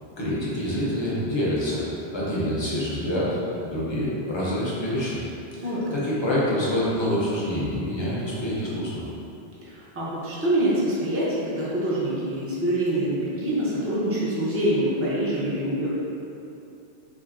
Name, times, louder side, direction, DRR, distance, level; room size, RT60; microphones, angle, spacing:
voice 1, 0.2-1.8 2.1-5.2 5.5-9.0, left 1 dB, 30° left, -7 dB, 0.7 m, -26 dB
voice 2, 5.6-5.9 9.6-15.9, right 1 dB, 15° right, -8 dB, 0.6 m, -25 dB
4.3 x 2.7 x 2.5 m, 2.8 s
omnidirectional pair, 1.1 m